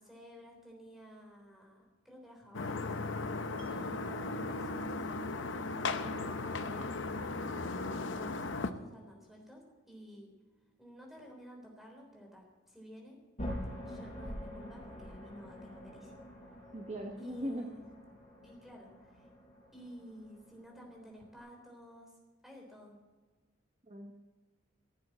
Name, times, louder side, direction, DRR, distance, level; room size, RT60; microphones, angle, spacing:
voice 1, 0.0-2.9 3.7-10.3 10.8-13.2 13.9-16.2 17.2-17.8 18.4-19.3 19.7-22.2 22.4-23.0, equal, ahead, 0 dB, 3.6 m, -52 dB
sound 1, 2.5-8.7, left 3 dB, 70° left, 0.9 m, -37 dB
Mallet percussion, 3.6-9.7, right 5 dB, 65° right, 2.1 m, -54 dB
sound 2, 13.4-21.4, equal, 35° left, 5.5 m, -46 dB
voice 2, 16.7-17.7 23.8-24.1, equal, 35° right, 3 dB, 1.0 m, -39 dB
15.5 x 7.8 x 8.4 m, 1.3 s
head